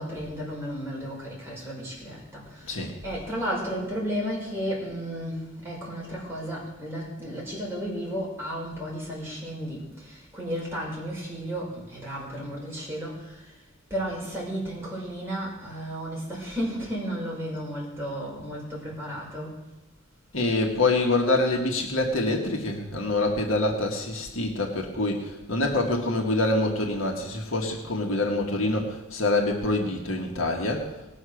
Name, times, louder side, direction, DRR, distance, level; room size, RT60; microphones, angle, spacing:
voice 1, 0.0-13.5 13.9-19.6, equal, 10° right, -5 dB, 5.4 m, -33 dB
voice 2, 20.3-30.9, left 2 dB, 70° left, 0 dB, 2.0 m, -26 dB
19.5 x 6.6 x 6.5 m, 1.1 s
head